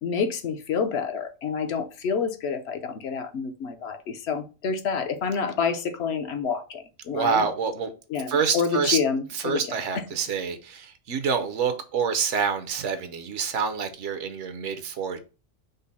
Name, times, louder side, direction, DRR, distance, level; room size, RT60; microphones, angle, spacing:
voice 1, 0.0-7.5 8.1-9.6, left 6 dB, 65° left, 0.9 m, -28 dB
voice 2, 7.1-7.9 8.3-9.0 9.3-15.2, right 6 dB, 75° right, 1.0 m, -27 dB
5.2 x 2.1 x 4.0 m
omnidirectional pair, 1.2 m